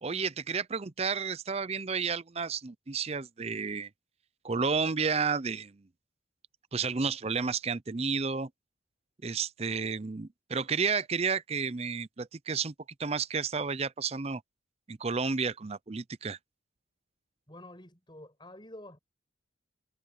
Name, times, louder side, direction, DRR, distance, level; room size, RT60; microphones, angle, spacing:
voice 1, 0.0-3.9 4.4-5.8 6.7-8.5 9.2-12.7 13.0-14.4 14.9-16.4, right 5 dB, 30° right, 0.5 m, -31 dB
voice 2, 17.5-19.0, left 1 dB, 25° left, 7.7 m, -48 dB
head